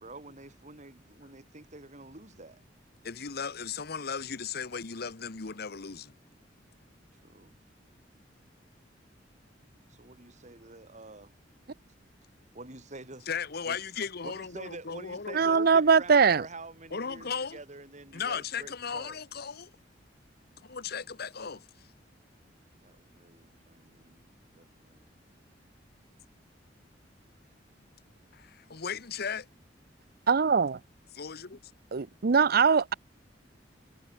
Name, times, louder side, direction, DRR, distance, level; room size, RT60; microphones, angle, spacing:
voice 1, 0.0-2.6 7.2-7.5 9.9-11.3 12.5-13.3 13.7-13.8 14.2-19.2 22.8-24.3 24.5-25.1, right 2 dB, 40° right, 3.7 m, -47 dB
voice 2, 3.0-6.1 13.3-15.7 16.9-17.6 18.1-19.7 20.6-21.6 28.3-29.5 31.1-31.6, left 6 dB, 60° left, 1.1 m, -36 dB
voice 3, 15.3-16.4 30.3-30.8 31.9-32.9, right 5 dB, 55° right, 0.6 m, -22 dB
head